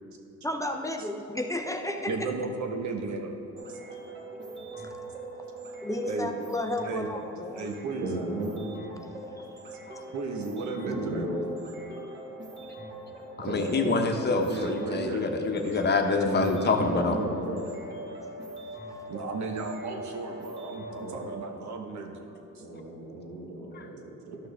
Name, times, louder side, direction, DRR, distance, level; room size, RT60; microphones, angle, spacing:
voice 1, 0.4-2.3 5.8-7.7 9.4-9.5, left 1 dB, 10° left, 4 dB, 0.5 m, -32 dB
voice 2, 2.0-3.4 3.7-3.8 4.5-4.8 6.0-6.3 6.8-7.1 7.5-8.2 10.1-11.3 14.4-15.6 19.1-22.3 22.5-22.6, right 3 dB, 70° right, 3 dB, 1.2 m, -35 dB
sound 1, 3.5-21.3, right 1 dB, 35° right, 1.8 m, -42 dB
voice 3, 7.5-8.5 10.8-11.4 13.4-14.0 16.2-17.6 21.0-21.5 22.6-24.4, right 2 dB, 85° right, -7 dB, 1.7 m, -34 dB
voice 4, 13.4-17.1 23.7-23.8, left 4 dB, 35° left, 3 dB, 1.0 m, -26 dB
12.5 x 6.0 x 3.4 m, 2.9 s
cardioid pair, 90°, 30 cm